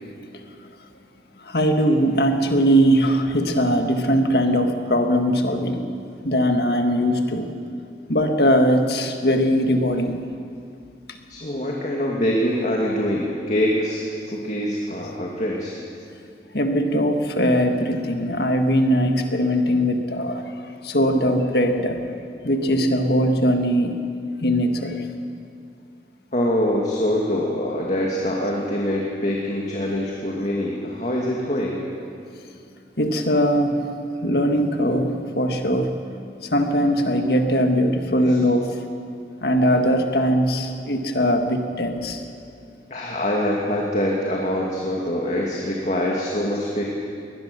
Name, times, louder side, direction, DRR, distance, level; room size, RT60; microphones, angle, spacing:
voice 1, 1.4-5.9 6.2-7.5 8.1-10.2 11.1-11.2 16.5-20.5 20.8-22.0 22.4-24.0 24.4-25.0 33.0-33.9 34.2-36.0 36.4-38.8 39.4-42.2, equal, 60° left, 5 dB, 1.8 m, -20 dB
voice 2, 11.3-14.0 14.3-15.8 26.3-31.8 38.1-38.2 42.9-46.8, left 1 dB, 40° left, -3 dB, 2.4 m, -24 dB
22.0 x 19.5 x 6.9 m, 2.4 s
head